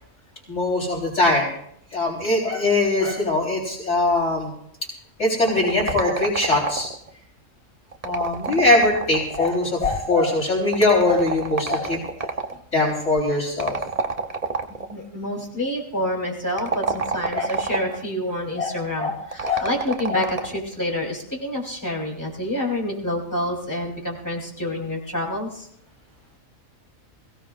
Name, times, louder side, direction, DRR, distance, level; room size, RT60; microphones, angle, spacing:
voice 1, 0.5-1.5 1.9-4.5 5.2-6.9 8.0-12.3 12.7-13.8 17.3-17.5 18.6-19.1 19.4-19.7 20.1-20.2, left 2 dB, 60° left, -4 dB, 4.5 m, -21 dB
sound 1, 5.5-7.1 7.9-9.8 10.7-12.6 13.6-14.9 16.5-18.1 19.3-20.6, right 4 dB, 30° right, 0.9 m, -28 dB
voice 2, 14.9-25.7, left 1 dB, 15° left, -2 dB, 3.8 m, -28 dB
22.0 x 16.5 x 2.5 m, 0.69 s
omnidirectional pair, 1.4 m